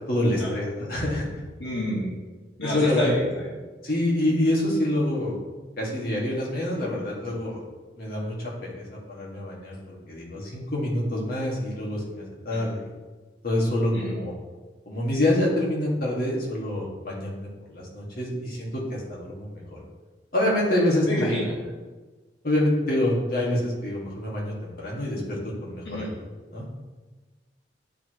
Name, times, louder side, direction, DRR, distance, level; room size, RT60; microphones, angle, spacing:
voice 1, 0.1-1.3 2.6-3.1 3.8-5.3 5.8-7.6 8.0-12.9 13.4-14.3 14.9-19.8 20.3-21.5 22.4-26.1 26.5-26.6, left 1 dB, 55° left, -4 dB, 1.9 m, -26 dB
voice 2, 1.6-2.2 2.6-3.5 12.5-12.7 13.9-14.1 21.1-21.5 25.8-26.1, equal, 85° left, -4 dB, 1.4 m, -29 dB
10.5 x 4.7 x 3.0 m, 1.3 s
head